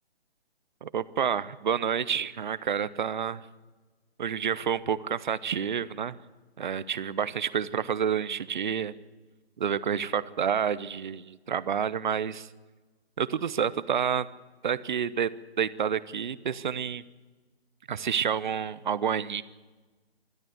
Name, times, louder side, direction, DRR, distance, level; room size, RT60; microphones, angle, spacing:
voice 1, 0.8-3.4 4.2-6.2 6.6-8.9 9.6-12.5 13.2-14.3 14.6-15.3 15.6-17.0 17.9-19.4, right 8 dB, 45° right, 17 dB, 0.9 m, -29 dB
27.0 x 12.5 x 7.9 m, 1.3 s
figure-of-eight pair, 145°, 32 cm